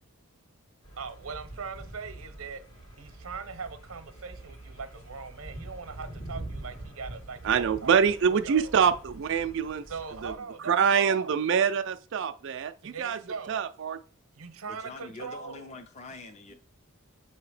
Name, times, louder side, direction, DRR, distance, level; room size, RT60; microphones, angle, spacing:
sound 1, 0.8-10.4, right 1 dB, 70° left, 1.6 m, -45 dB
voice 1, 1.0-2.6 3.0-8.7 9.9-11.4 12.8-13.6 14.3-15.7 16.5-16.6, right 5 dB, 75° right, 0.8 m, -40 dB
voice 2, 7.4-9.8 10.2-10.3 10.7-13.2 13.5-14.0, right 7 dB, 60° right, 0.4 m, -25 dB
voice 3, 14.7-16.5, left 2 dB, 30° left, 0.5 m, -44 dB
6.9 x 2.9 x 4.8 m
head